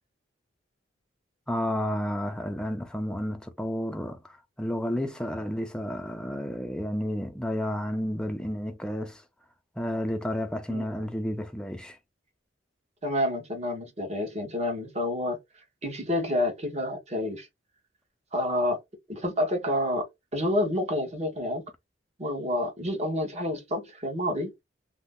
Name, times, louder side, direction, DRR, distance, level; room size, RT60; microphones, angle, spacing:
voice 1, 1.5-9.2 9.8-12.0, equal, 5° left, 0.4 m, -31 dB
voice 2, 13.0-15.4 15.8-17.5 18.3-18.8 19.1-20.1 20.3-21.6 22.2-24.5, left 1 dB, 35° right, 1.1 m, -28 dB
2.7 x 2.1 x 3.5 m
head